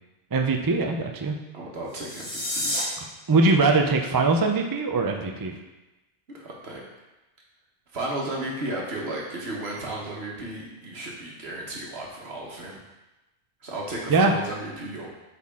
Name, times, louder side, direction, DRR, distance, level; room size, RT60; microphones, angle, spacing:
voice 1, 0.3-1.4 3.3-5.5 14.1-14.3, right 3 dB, 30° right, 3 dB, 0.4 m, -21 dB
voice 2, 1.5-2.8 6.3-6.8 7.9-12.8 13.6-15.1, right 1 dB, 65° right, -2 dB, 1.6 m, -34 dB
sound 1, 1.9-2.8, left 1 dB, 35° left, 1.6 m, -29 dB
8.3 x 4.3 x 3.6 m, 1.0 s
omnidirectional pair, 1.1 m